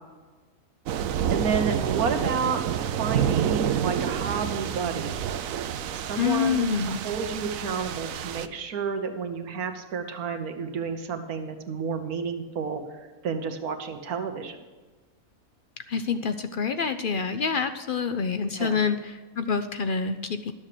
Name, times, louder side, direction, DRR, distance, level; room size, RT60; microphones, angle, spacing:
sound 1, 0.9-8.5, right 9 dB, 70° right, 1.0 m, -28 dB
voice 1, 1.3-2.6 3.0-5.3 5.9-12.8 13.2-14.6 18.6-18.8, right 5 dB, 90° right, 7 dB, 1.5 m, -30 dB
voice 2, 6.2-7.0 15.9-20.5, left 6 dB, 60° left, 9 dB, 0.5 m, -27 dB
12.5 x 7.3 x 6.6 m, 1.3 s
omnidirectional pair, 1.5 m